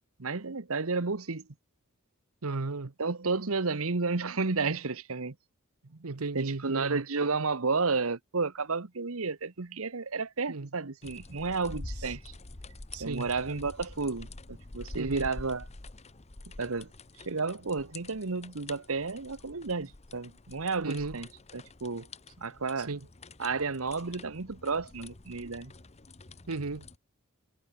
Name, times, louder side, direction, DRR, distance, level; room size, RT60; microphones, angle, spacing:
voice 1, 0.0-1.5 3.0-5.3 5.9-6.0 6.3-12.3 13.0-15.6 16.6-16.9 17.3-21.3 21.5-22.1 22.4-22.9 23.4-25.7, right 4 dB, 65° right, 1.2 m, -32 dB
voice 2, 2.4-2.9 6.0-7.0 10.5-10.7 12.0-12.1 12.9-13.3 15.0-15.3 20.8-21.2 22.8-23.0 26.5-26.9, right 3 dB, 90° right, 1.0 m, -35 dB
sound 1, 11.0-27.0, left 2 dB, 30° left, 1.1 m, -47 dB
head